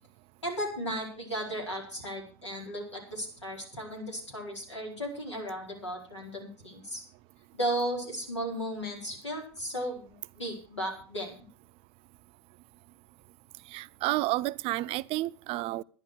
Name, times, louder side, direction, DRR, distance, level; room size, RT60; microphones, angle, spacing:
voice 1, 0.4-7.0 7.5-11.4, right 1 dB, 85° left, 4.6 m, -35 dB
voice 2, 13.7-15.8, right 18 dB, 40° right, 0.5 m, -30 dB
11.0 x 10.5 x 6.3 m
figure-of-eight pair, 85°, 14 cm